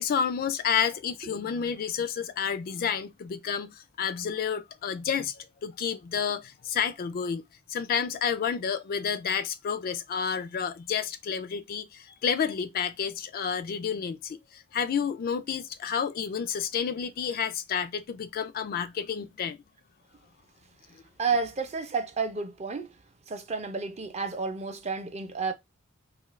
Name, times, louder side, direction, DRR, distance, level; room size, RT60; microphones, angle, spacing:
voice 1, 0.0-7.4 7.7-19.6, left 7 dB, 45° left, 0.3 m, -30 dB
voice 2, 21.2-22.9 23.3-25.5, right 4 dB, 30° right, 0.5 m, -31 dB
2.7 x 2.4 x 3.0 m
head